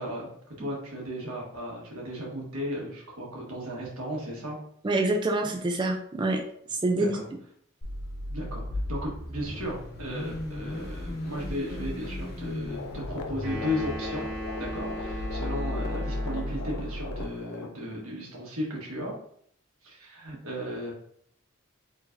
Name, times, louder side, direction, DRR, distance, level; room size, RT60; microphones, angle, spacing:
voice 1, 0.0-4.6 6.9-7.3 8.3-14.3 14.6-19.2 19.8-20.9, equal, 85° right, -2 dB, 1.4 m, -35 dB
voice 2, 4.8-6.4 6.7-7.2, right 2 dB, 20° right, 3 dB, 0.3 m, -26 dB
Car / Idling / Accelerating revving vroom, 7.8-17.2, left 1 dB, 45° left, 1.0 m, -35 dB
sound 1, 12.7-17.7, left 4 dB, 90° left, 0.5 m, -40 dB
sound 2, 13.4-16.8, equal, 35° right, 1.5 m, -37 dB
4.7 x 3.2 x 2.5 m, 0.65 s
head